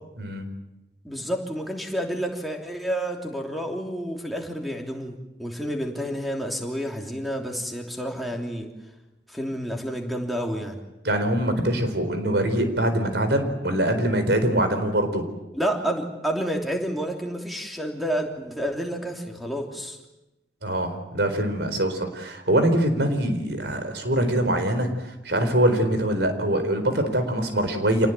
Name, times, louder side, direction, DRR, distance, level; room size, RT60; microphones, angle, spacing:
voice 1, 1.0-8.7 9.3-10.8 15.5-20.0, equal, ahead, 2 dB, 3.1 m, -29 dB
voice 2, 11.0-15.2 20.6-28.1, right 1 dB, 70° right, 8 dB, 4.3 m, -23 dB
27.0 x 19.5 x 9.1 m, 1.0 s
head